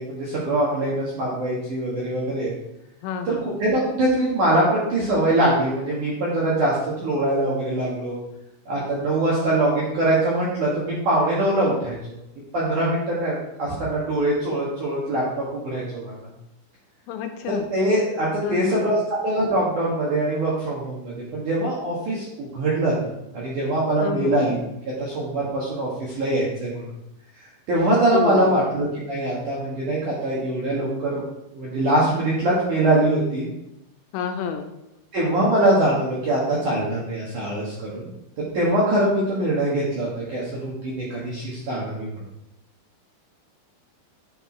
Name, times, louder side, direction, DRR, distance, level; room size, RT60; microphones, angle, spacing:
voice 1, 0.0-2.5 3.3-8.2 8.7-12.0 12.5-13.3 13.6-16.1 17.5-24.6 25.0-26.8 27.7-31.2 31.5-33.5 35.1-38.1 38.5-42.1, right 1 dB, 65° right, -6 dB, 2.0 m, -23 dB
voice 2, 3.0-3.5 17.1-17.7 18.4-19.0 24.0-24.4 28.1-28.6 34.1-34.7, left 7 dB, 85° left, 6 dB, 3.2 m, -29 dB
10.0 x 4.6 x 4.4 m, 0.85 s
omnidirectional pair, 5.8 m